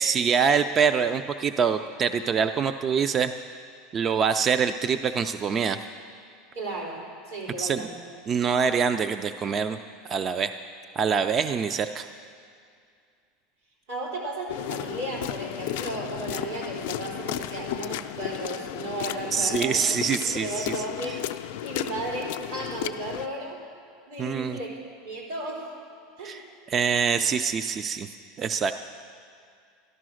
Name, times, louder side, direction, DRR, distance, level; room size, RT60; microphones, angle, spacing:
voice 1, 0.0-3.3 3.9-5.8 7.6-7.9 8.3-9.8 10.1-10.6 11.0-12.1 19.3-20.7 24.2-24.6 26.2-26.4 26.7-28.1 28.4-28.7, right 6 dB, 25° right, 10 dB, 0.4 m, -25 dB
voice 2, 6.5-7.0 7.3-7.9 13.9-19.8 20.2-21.3 21.6-23.6 24.1-24.7 25.0-25.7 26.2-26.4, right 2 dB, 90° right, -2 dB, 4.0 m, -34 dB
sound 1, 14.5-23.3, left 13 dB, 75° left, 0.4 m, -34 dB
13.0 x 12.5 x 6.3 m, 2.3 s
supercardioid pair, 150°, 0 cm